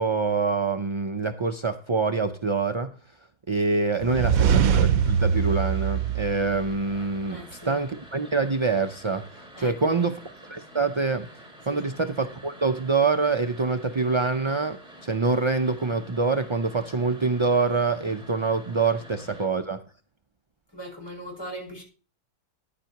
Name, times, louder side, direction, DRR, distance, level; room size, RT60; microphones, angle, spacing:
voice 1, 0.0-2.9 3.5-10.2 10.5-11.3 11.7-19.8, right 4 dB, 45° right, 0.4 m, -25 dB
voice 2, 4.0-4.5 7.3-7.8 9.5-10.1 11.6-11.9 19.2-19.4 20.7-21.8, equal, 15° left, 5.6 m, -40 dB
sound 1, 4.0-7.0, right 7 dB, 90° right, 1.1 m, -23 dB
sound 2, 4.1-19.5, equal, 5° right, 4.4 m, -48 dB
13.5 x 10.5 x 2.9 m
omnidirectional pair, 1.4 m